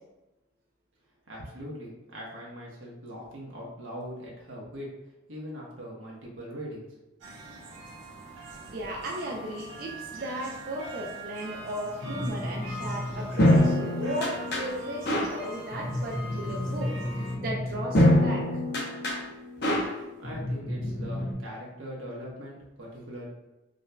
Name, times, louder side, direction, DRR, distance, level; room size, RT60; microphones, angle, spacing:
voice 1, 1.3-5.0 5.3-6.9 20.0-23.2, equal, 90° right, -3 dB, 1.2 m, -41 dB
sound 1, 7.2-17.4, right 1 dB, 75° right, 0.9 m, -42 dB
voice 2, 8.7-18.4, right 1 dB, 45° right, -2 dB, 0.5 m, -36 dB
sound 2, 12.0-21.3, left 1 dB, 55° left, 0.8 m, -27 dB
5.0 x 2.6 x 2.2 m, 1.0 s
head